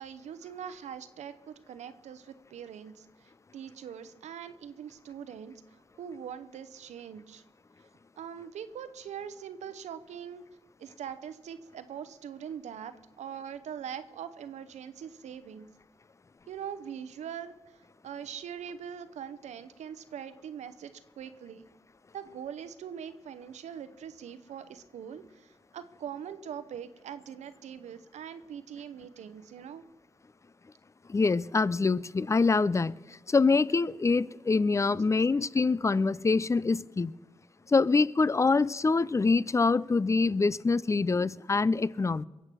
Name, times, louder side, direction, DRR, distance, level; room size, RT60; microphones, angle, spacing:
voice 1, 0.0-7.4 8.2-10.4 10.8-15.7 16.5-21.7 22.1-29.8, right 8 dB, 85° right, 0.8 m, -42 dB
voice 2, 31.1-37.1 37.7-42.2, left 4 dB, 25° left, 0.4 m, -25 dB
22.0 x 8.0 x 6.1 m
cardioid pair, 55°, 12 cm